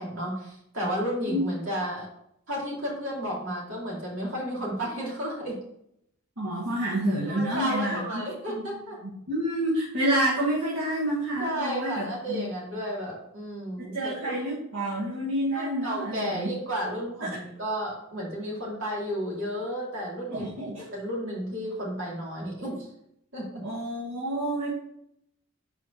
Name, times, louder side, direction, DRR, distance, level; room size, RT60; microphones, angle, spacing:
voice 1, 0.0-2.1 2.5-5.6 7.2-9.0 11.4-14.5 15.5-22.9 23.3-23.6, equal, 65° right, -4 dB, 2.8 m, -32 dB
voice 2, 6.4-8.7 9.0-12.4 13.8-16.5 17.2-17.4 20.3-20.8 23.6-24.8, right 1 dB, 85° right, -6 dB, 1.6 m, -29 dB
5.0 x 4.7 x 5.7 m, 0.74 s
head